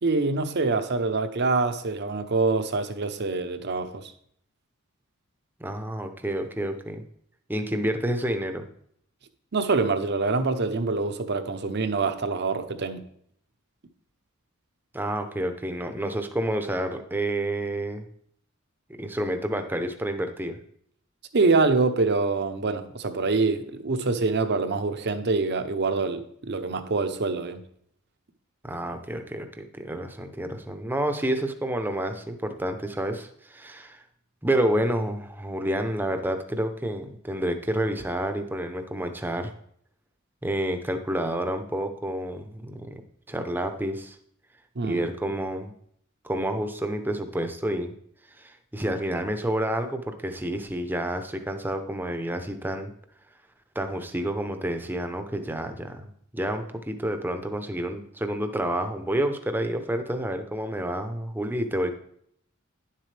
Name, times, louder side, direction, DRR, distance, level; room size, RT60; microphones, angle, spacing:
voice 1, 0.0-4.0 9.5-13.0 21.3-27.6 44.8-45.0, right 3 dB, 55° right, 9 dB, 0.8 m, -25 dB
voice 2, 5.6-7.0 7.5-8.6 14.9-18.1 19.0-20.6 28.6-34.0 34.4-39.5 40.4-44.2 44.8-45.7 46.2-47.9 48.3-52.9 53.7-61.9, right 1 dB, 10° right, 6 dB, 0.7 m, -29 dB
10.5 x 7.5 x 3.4 m, 0.66 s
head